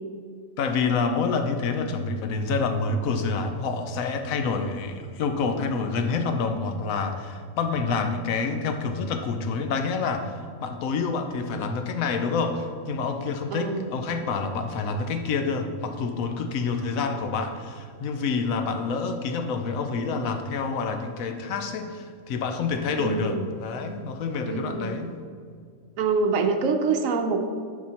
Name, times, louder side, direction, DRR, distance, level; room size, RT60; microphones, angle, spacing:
voice 1, 0.6-25.1, left 4 dB, 80° left, 6 dB, 1.1 m, -27 dB
voice 2, 13.5-13.9 23.0-23.5 24.4-25.0 26.0-27.5, right 4 dB, 75° right, 6 dB, 1.0 m, -25 dB
11.0 x 4.8 x 2.9 m, 2.1 s
omnidirectional pair, 1.4 m